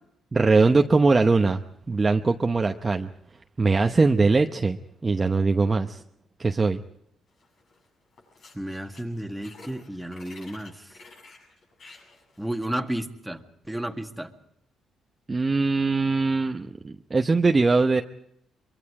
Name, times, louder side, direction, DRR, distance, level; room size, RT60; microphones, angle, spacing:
voice 1, 0.3-1.6 1.9-3.1 3.6-6.0 6.4-6.8 15.3-18.0, right 3 dB, 25° right, 5 dB, 0.9 m, -21 dB
sound 1, 7.4-7.9 8.1-12.7, left 3 dB, 60° left, 7.6 m, -51 dB
voice 2, 8.5-10.8 12.4-13.4 13.7-14.3, right 1 dB, 5° right, 4 dB, 1.9 m, -32 dB
23.5 x 23.0 x 4.8 m, 0.74 s
cardioid pair, 90°, 0 cm